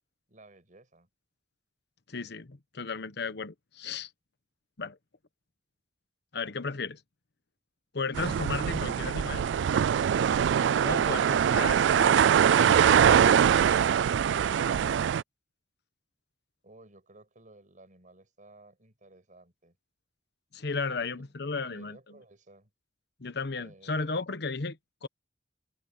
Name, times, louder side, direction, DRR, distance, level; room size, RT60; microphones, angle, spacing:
voice 1, 0.3-1.1 16.6-19.8 21.0-21.3 21.6-22.7 23.6-24.2, right 2 dB, 45° right, 6.1 m, -56 dB
voice 2, 2.1-4.1 4.8-5.0 6.3-7.0 7.9-9.5 10.8-12.2 12.6-13.2 20.5-22.0 23.2-25.1, left 4 dB, 65° left, 1.1 m, -34 dB
sound 1, 8.2-15.2, right 8 dB, 80° right, 0.3 m, -23 dB
head